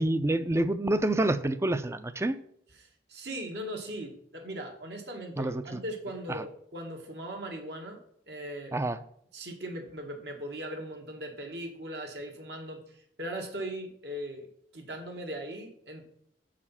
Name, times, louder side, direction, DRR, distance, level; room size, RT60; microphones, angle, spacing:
voice 1, 0.0-2.4 5.4-5.8 6.3-6.4 8.7-9.0, right 1 dB, 15° right, 12 dB, 0.4 m, -27 dB
voice 2, 2.7-8.0 8.3-8.7 9.3-14.5 14.7-16.0, right 1 dB, 70° right, 2 dB, 1.8 m, -39 dB
7.3 x 5.0 x 5.5 m, 0.68 s
head